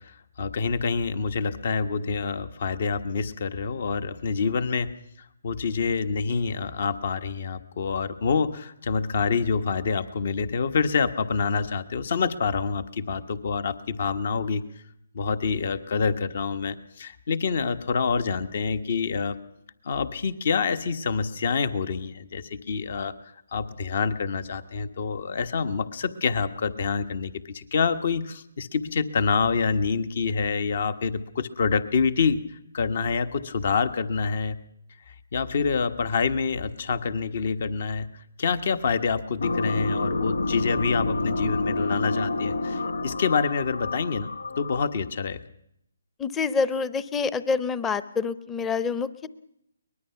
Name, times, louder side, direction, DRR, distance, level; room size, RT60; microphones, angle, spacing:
voice 1, 0.0-4.9 5.4-14.6 15.1-19.4 19.8-23.1 23.5-32.4 32.7-34.6 35.1-38.1 38.4-44.3 44.6-45.4, left 5 dB, 55° left, 12 dB, 1.3 m, -27 dB
sound 1, 39.4-45.0, left 2 dB, 80° left, 0.9 m, -28 dB
voice 2, 46.2-49.3, left 5 dB, 10° left, 15 dB, 0.8 m, -27 dB
23.0 x 20.5 x 5.9 m, 0.76 s
hypercardioid pair, 150°, 0 cm